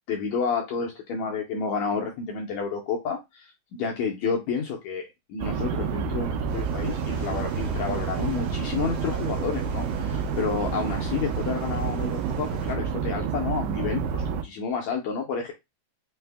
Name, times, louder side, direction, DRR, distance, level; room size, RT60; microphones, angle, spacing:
voice 1, 0.1-15.5, left 5 dB, 75° left, 0 dB, 1.7 m, -30 dB
sound 1, 5.4-14.4, right 6 dB, 85° right, 2.3 m, -29 dB
sound 2, 6.5-12.7, right 3 dB, 60° right, 1.5 m, -46 dB
5.4 x 2.1 x 3.3 m, 0.21 s
omnidirectional pair, 3.9 m